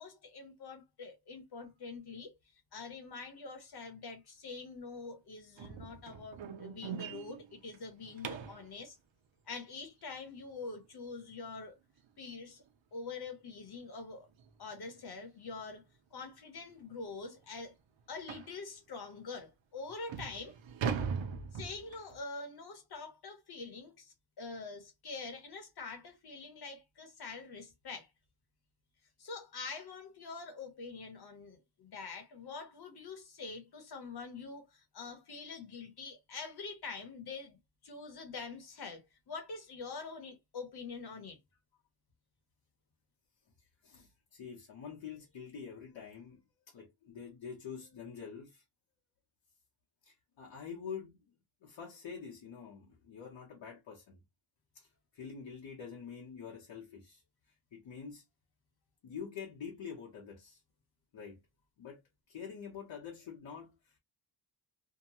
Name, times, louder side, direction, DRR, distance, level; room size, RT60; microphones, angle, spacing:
voice 1, 0.0-2.3 2.7-9.0 9.5-11.8 12.2-12.6 12.9-14.3 14.6-15.8 16.1-17.7 18.1-20.5 21.5-28.1 29.2-41.4, left 4 dB, 60° left, 1.0 m, -45 dB
sound 1, 5.6-8.7 11.5-11.6 12.1-12.3 12.6-12.7 13.2-13.3 14.4-14.5 14.9-15.1 15.7-15.8 16.2-16.3 16.8-16.9 18.3-18.6 19.3-19.4 19.9-22.2, right 6 dB, 90° right, 0.7 m, -40 dB
voice 2, 43.8-48.6 50.0-51.2 51.6-54.2 54.7-57.2 57.7-58.2 59.0-60.6 61.1-61.4 61.8-62.0 62.3-64.0, left 6 dB, 75° left, 1.0 m, -46 dB
2.8 x 2.2 x 2.8 m
wide cardioid pair, 165°, 45 cm